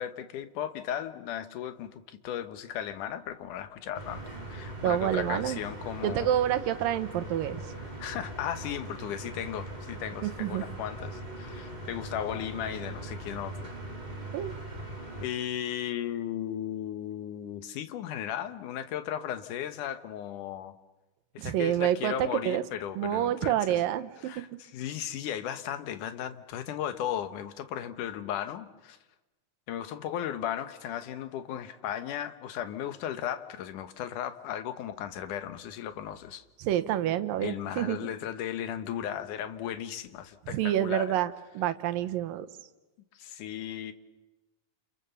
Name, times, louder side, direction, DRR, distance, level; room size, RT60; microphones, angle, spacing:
voice 1, 0.0-4.2 4.5-6.3 8.0-13.5 15.2-20.7 21.3-23.6 24.3-29.0 29.7-36.4 37.4-41.2 43.1-43.9, left 10 dB, 70° left, 10 dB, 2.6 m, -36 dB
sound 1, 3.9-15.3, right 1 dB, 10° right, 4.3 m, -41 dB
voice 2, 4.8-5.6 6.0-7.7 10.2-10.6 14.3-14.5 21.4-22.6 23.0-24.4 36.6-38.0 40.5-42.5, right 11 dB, 80° right, 11 dB, 2.8 m, -28 dB
29.5 x 28.5 x 7.0 m, 1.1 s
omnidirectional pair, 3.9 m